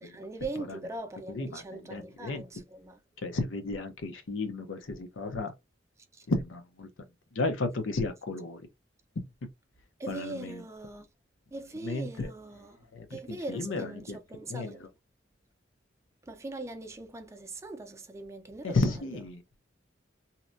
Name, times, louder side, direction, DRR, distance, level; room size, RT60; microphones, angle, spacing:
voice 1, 0.0-3.0 6.1-6.3 10.0-11.1 11.5-12.8 13.1-14.9 16.2-19.2, right 2 dB, 15° right, 0.4 m, -41 dB
voice 2, 1.3-2.4 3.2-5.5 6.3-6.9 7.3-8.6 10.1-10.6 11.8-12.3 12.9-14.2 14.5-14.7 18.6-19.4, left 3 dB, 90° left, 0.6 m, -33 dB
2.8 x 2.1 x 2.5 m
head